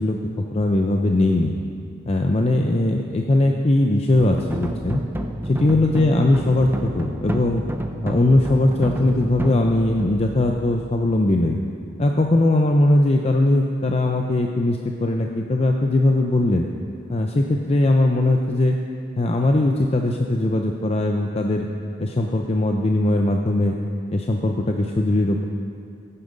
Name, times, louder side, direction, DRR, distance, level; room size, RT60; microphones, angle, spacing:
voice 1, 0.0-1.5 2.1-5.0 5.5-7.6 8.0-11.6 12.0-16.7 17.1-18.8 19.2-21.7 22.0-23.7 24.1-25.4, left 2 dB, 30° left, 2 dB, 0.6 m, -20 dB
sound 1, 4.2-11.4, right 1 dB, 10° right, 0.6 m, -30 dB
16.0 x 9.8 x 5.3 m, 2.4 s
head